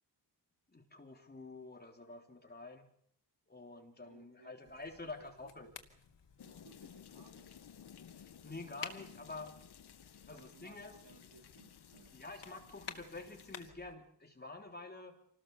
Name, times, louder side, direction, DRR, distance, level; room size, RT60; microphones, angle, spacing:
voice 1, 0.7-2.9 3.5-5.7 6.4-6.6 8.2-9.5 10.3-11.0 12.1-15.2, left 3 dB, 25° left, 3 dB, 3.6 m, -48 dB
voice 2, 4.0-4.8 5.2-5.8 6.4-7.6 10.3-12.2, right 5 dB, 85° right, 5 dB, 2.9 m, -63 dB
sound 1, 4.6-13.9, left 6 dB, 90° left, 2.6 m, -54 dB
sound 2, 6.4-13.7, left 8 dB, 70° left, 1.0 m, -57 dB
27.5 x 19.0 x 7.1 m, 0.70 s
wide cardioid pair, 140°, 42 cm